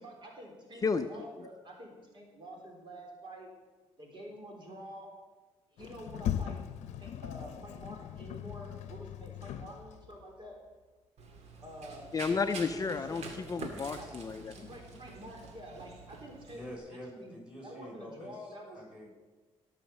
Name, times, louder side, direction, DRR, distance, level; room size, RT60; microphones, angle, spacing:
voice 1, 0.0-3.5 4.0-5.1 5.7-6.6 7.0-10.6 11.6-12.1 12.5-13.5 14.0-14.1 14.7-16.6 17.1-17.4 17.6-18.8, equal, 45° right, 1 dB, 3.6 m, -48 dB
Sliding door, 5.8-10.2, left 10 dB, 85° left, 0.7 m, -39 dB
Run, 11.2-16.8, right 3 dB, 70° right, 2.2 m, -47 dB
voice 2, 12.1-14.7, left 5 dB, 30° left, 8 dB, 0.5 m, -32 dB
voice 3, 16.5-19.1, equal, 10° right, -2 dB, 5.5 m, -47 dB
17.5 x 6.4 x 6.9 m, 1.3 s
cardioid pair, 95°, 12 cm